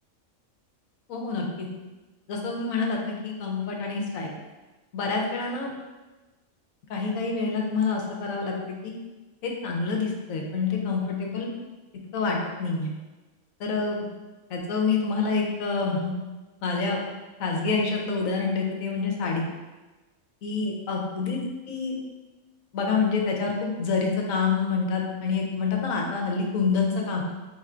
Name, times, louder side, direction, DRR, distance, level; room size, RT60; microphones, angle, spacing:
voice 1, 1.1-1.7 2.3-4.3 4.9-5.7 6.9-8.5 8.8-8.9 9.4-11.5 12.1-12.9 13.6-14.0 14.5-16.1 16.6-17.0 17.4-19.5 20.4-21.4 21.7-22.0 22.7-27.2, left 4 dB, 75° left, 0 dB, 1.1 m, -27 dB
3.5 x 2.5 x 4.3 m, 1.2 s
omnidirectional pair, 1.4 m